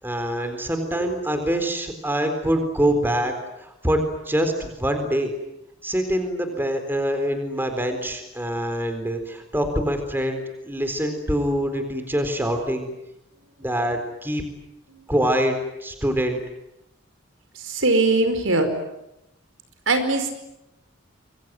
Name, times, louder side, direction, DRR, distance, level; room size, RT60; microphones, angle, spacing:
voice 1, 0.0-3.3 3.6-5.3 5.8-12.9 13.6-14.4 15.1-16.4, equal, 10° right, 7 dB, 4.1 m, -25 dB
voice 2, 17.6-18.7 19.9-20.3, right 2 dB, 80° right, 8 dB, 4.9 m, -21 dB
27.0 x 23.5 x 9.4 m, 0.88 s
head